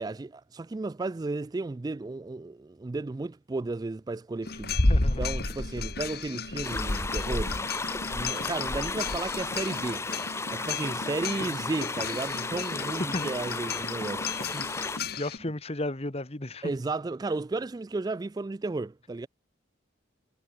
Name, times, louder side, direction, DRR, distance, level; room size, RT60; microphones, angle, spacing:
voice 1, 0.0-7.7 8.1-10.0 10.4-14.3 16.6-19.3, right 3 dB, 20° right, 0.3 m, -34 dB
sound 1, 4.4-15.4, left 3 dB, 55° left, 1.8 m, -32 dB
voice 2, 4.9-5.2 11.5-11.6 13.1-13.3 14.5-14.7 15.1-16.7, left 1 dB, 35° left, 1.4 m, -34 dB
sound 2, 6.6-15.0, left 3 dB, 15° left, 0.7 m, -34 dB
head